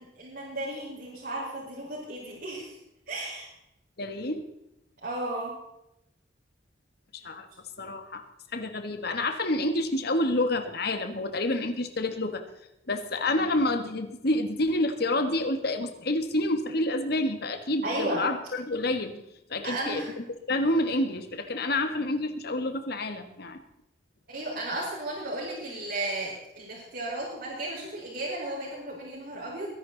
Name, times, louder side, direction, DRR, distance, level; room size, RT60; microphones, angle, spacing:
voice 1, 0.2-2.7 3.1-3.5 5.0-5.5 17.8-18.2 19.6-20.1 24.3-29.7, right 1 dB, 60° right, -7 dB, 5.0 m, -34 dB
voice 2, 4.0-4.4 7.1-7.5 7.8-8.3 8.5-12.4 12.9-19.2 19.5-20.1 20.5-23.6, left 1 dB, 60° left, 8 dB, 1.6 m, -28 dB
22.0 x 11.0 x 4.0 m, 0.85 s
head